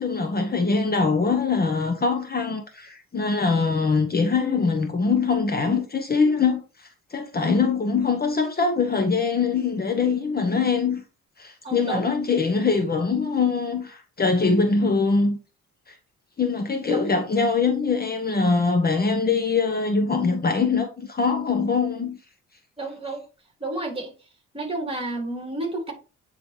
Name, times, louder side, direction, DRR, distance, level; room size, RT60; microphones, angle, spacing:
voice 1, 0.0-6.6 7.1-11.0 11.4-15.4 15.9-16.0 16.4-22.2, left 4 dB, 30° left, 1.1 m, -23 dB
voice 2, 11.6-12.1 16.9-17.1 22.8-23.2 23.6-24.1 24.5-25.9, right 2 dB, 20° right, 2.6 m, -30 dB
8.9 x 3.9 x 3.3 m
cardioid pair, 90°, 30 cm